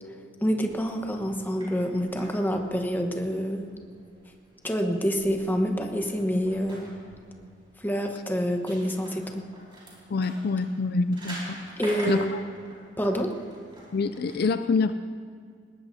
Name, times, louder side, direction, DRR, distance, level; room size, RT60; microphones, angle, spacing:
voice 1, 0.4-3.6 4.6-6.9 7.8-9.4 11.8-12.3 13.0-13.3, equal, 10° left, 3 dB, 1.1 m, -27 dB
sound 1, 0.6-14.3, right 1 dB, 30° right, 4.9 m, -46 dB
voice 2, 10.1-11.4 12.1-12.2 13.9-14.9, left 4 dB, 55° left, 11 dB, 0.4 m, -25 dB
20.5 x 18.5 x 2.7 m, 2.2 s
head